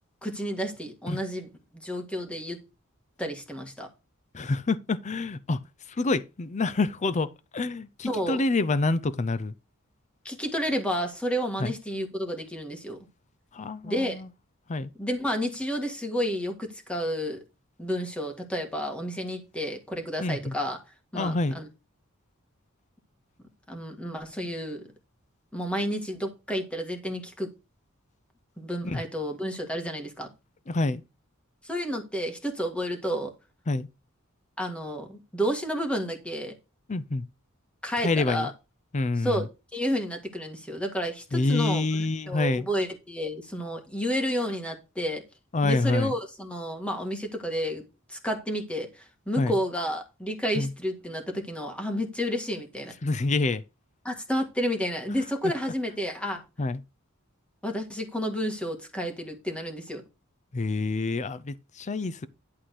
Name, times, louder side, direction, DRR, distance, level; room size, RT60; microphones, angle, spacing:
voice 1, 0.2-2.6 3.2-3.9 8.0-8.4 10.2-13.0 13.8-14.2 15.0-17.4 17.8-20.8 21.1-21.7 23.7-24.8 25.5-27.5 28.6-30.3 31.6-33.3 34.6-36.5 37.8-38.5 39.2-45.2 45.6-52.9 54.0-56.4 57.6-60.0, equal, 5° left, 1.8 m, -31 dB
voice 2, 4.3-5.6 6.0-9.5 11.6-11.7 13.5-14.3 14.7-14.9 20.2-20.5 21.1-21.5 28.8-29.0 30.7-31.0 33.7-33.9 36.9-37.3 38.0-38.5 38.9-39.4 41.3-42.6 45.5-46.1 49.4-49.5 50.6-50.7 53.0-53.6 56.6-56.8 60.5-62.3, left 3 dB, 35° left, 0.6 m, -27 dB
11.5 x 3.8 x 6.5 m
head